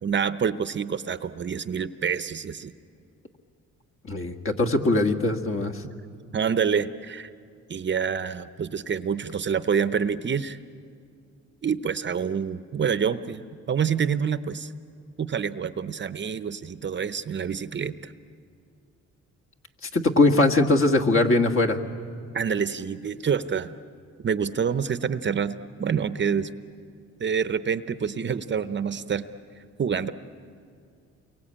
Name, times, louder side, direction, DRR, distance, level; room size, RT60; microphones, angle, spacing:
voice 1, 0.0-2.7 6.3-7.3 7.7-10.6 11.6-14.7 15.2-18.1 22.3-23.7 24.2-26.5 27.2-29.3 29.8-30.1, right 7 dB, 40° right, 13 dB, 0.8 m, -27 dB
voice 2, 4.1-5.8 19.8-21.8, left 2 dB, 45° left, 4 dB, 1.8 m, -21 dB
29.5 x 23.0 x 8.8 m, 2.3 s
cardioid pair, 90°, 30 cm